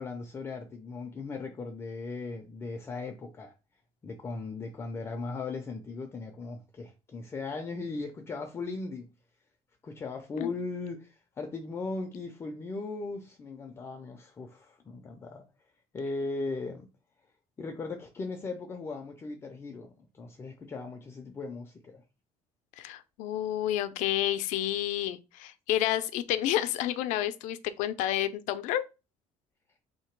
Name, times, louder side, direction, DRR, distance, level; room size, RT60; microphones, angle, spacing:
voice 1, 0.0-3.5 4.0-9.1 9.8-15.5 15.9-16.9 17.6-22.0, left 3 dB, 20° left, 0.4 m, -38 dB
voice 2, 22.8-28.8, left 12 dB, 75° left, 0.5 m, -30 dB
3.6 x 2.8 x 4.5 m
cardioid pair, 175°, 13 cm